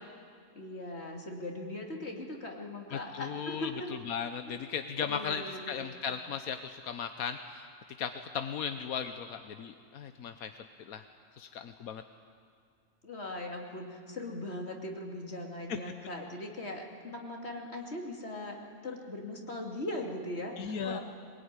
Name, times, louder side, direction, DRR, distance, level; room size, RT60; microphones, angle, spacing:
voice 1, 0.5-3.9 4.5-4.7 5.1-5.9 13.0-18.6 18.8-21.0, left 1 dB, 50° left, 1 dB, 2.9 m, -40 dB
voice 2, 2.9-3.7 4.1-7.7 8.0-10.5 10.9-11.0 11.4-12.0 15.7-15.8 20.6-21.0, left 7 dB, 85° left, 8 dB, 1.3 m, -36 dB
22.5 x 21.0 x 9.8 m, 2.1 s
omnidirectional pair, 1.5 m